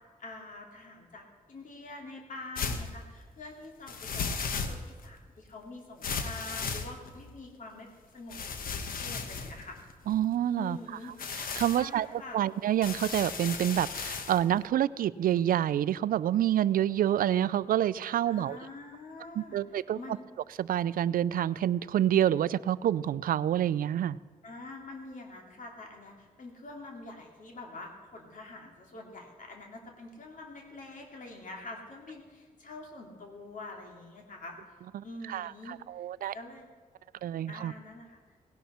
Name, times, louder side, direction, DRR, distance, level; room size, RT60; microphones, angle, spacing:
voice 1, 0.2-7.9 8.1-8.4 8.7-9.8 10.6-11.3 11.7-12.4 18.3-20.2 24.4-34.6 35.0-36.1 36.3-36.7 37.5-38.2, left 2 dB, 65° left, 1 dB, 2.6 m, -46 dB
sound 1, 2.6-2.9 3.9-5.0 6.0-7.3 8.3-10.3 11.1-11.8 12.8-14.4, left 5 dB, 90° left, 1.1 m, -35 dB
voice 2, 10.1-10.8 11.6-12.1 12.3-18.6 19.4-20.0 20.6-24.2 34.9-36.3 37.2-37.7, right 11 dB, 85° right, 19 dB, 0.4 m, -27 dB
17.5 x 11.5 x 4.3 m, 1.6 s
cardioid pair, 95°, 14 cm